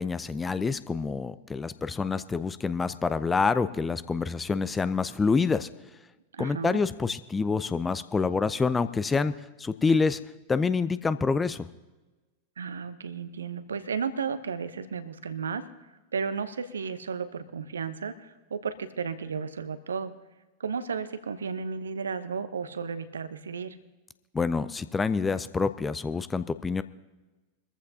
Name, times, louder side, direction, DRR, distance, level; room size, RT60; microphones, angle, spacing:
voice 1, 0.0-5.7 6.4-9.3 9.6-10.2 10.5-11.7 24.3-26.8, left 4 dB, 15° left, 14 dB, 0.5 m, -27 dB
voice 2, 6.3-6.8 12.6-15.7 16.1-20.1 20.6-23.8, right 6 dB, 70° right, 13 dB, 0.8 m, -33 dB
22.5 x 14.5 x 2.8 m, 1.1 s
figure-of-eight pair, 90°, 0 cm